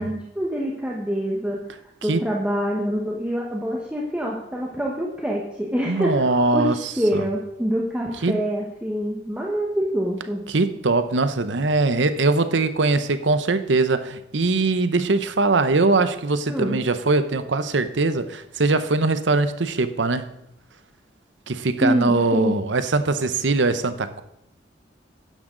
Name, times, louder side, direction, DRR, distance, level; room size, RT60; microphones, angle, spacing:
voice 1, 0.0-1.6 2.0-10.4 16.5-16.8 21.8-22.6, equal, 5° right, -3 dB, 1.2 m, -25 dB
voice 2, 5.9-7.2 8.2-8.4 10.5-20.3 21.5-24.2, right 3 dB, 85° right, 11 dB, 0.8 m, -21 dB
12.5 x 10.0 x 3.9 m, 0.78 s
head